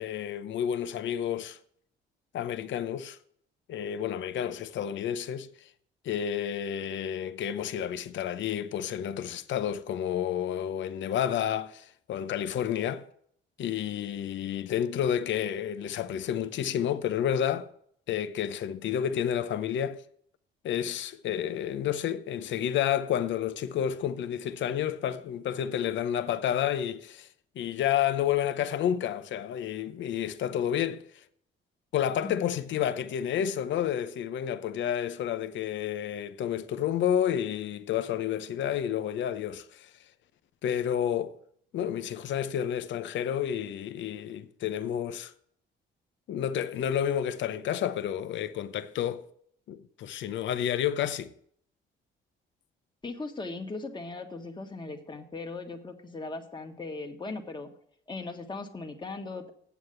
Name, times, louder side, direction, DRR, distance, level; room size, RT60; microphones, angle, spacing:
voice 1, 0.0-1.6 2.3-3.2 3.7-5.7 6.0-13.0 13.6-17.7 18.1-20.0 20.6-27.3 27.6-31.2 31.9-39.9 40.6-41.4 41.7-45.3 46.3-49.2 49.7-51.3, left 9 dB, 70° left, 0.7 m, -30 dB
voice 2, 53.0-57.7 58.1-59.5, left 3 dB, 25° left, 1.5 m, -38 dB
8.3 x 7.3 x 7.9 m
cardioid pair, 90°, 20 cm